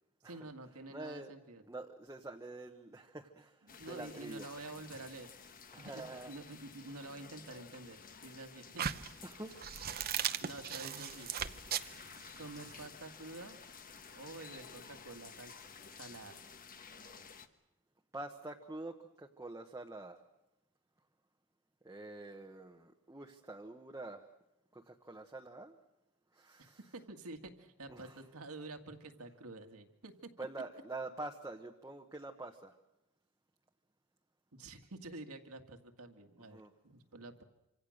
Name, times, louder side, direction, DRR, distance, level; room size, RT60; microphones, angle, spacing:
voice 1, 0.2-1.6 3.6-5.3 5.7-9.0 10.4-11.3 12.4-13.6 14.2-15.5 15.9-16.4 26.9-30.3 34.5-37.4, right 2 dB, 70° right, 6 dB, 2.1 m, -49 dB
voice 2, 0.9-1.3 1.7-4.5 5.7-6.3 9.2-9.6 18.1-20.2 21.8-24.3 24.7-25.8 26.3-26.8 27.9-28.2 30.4-32.7 36.5-36.7, right 2 dB, 15° right, 1 dB, 1.1 m, -46 dB
sound 1, 3.7-17.5, left 6 dB, 40° left, 1.3 m, -53 dB
sound 2, 8.8-12.9, right 9 dB, 45° right, 0.8 m, -38 dB
26.5 x 26.0 x 6.6 m, 0.94 s
head